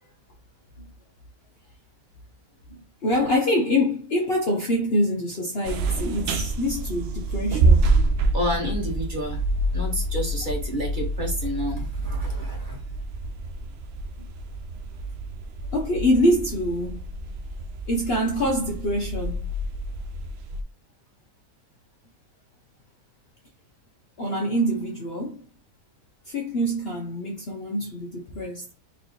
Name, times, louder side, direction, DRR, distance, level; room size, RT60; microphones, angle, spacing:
voice 1, 3.0-8.0 15.7-17.0 17.9-19.5 24.2-25.4 26.3-28.8, equal, 50° left, 0.8 m, -25 dB
sound 1, 5.6-20.6, right 2 dB, 90° right, 0.5 m, -27 dB
voice 2, 8.3-9.4 9.7-12.8 14.2-14.3, equal, 35° right, 1.1 m, -30 dB
4.2 x 3.2 x 2.7 m
omnidirectional pair, 1.6 m